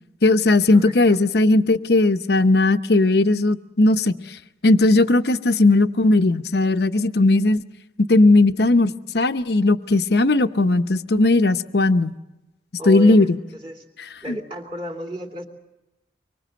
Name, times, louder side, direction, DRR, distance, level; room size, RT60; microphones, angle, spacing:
voice 1, 0.2-4.4 4.6-7.6 8.1-12.1 12.9-13.3 14.3-14.4, left 2 dB, 65° left, 9 dB, 0.8 m, -17 dB
voice 2, 0.7-1.2 12.8-13.8 14.2-15.5, equal, 30° right, 2 dB, 2.8 m, -33 dB
24.5 x 24.5 x 7.7 m, 0.97 s
head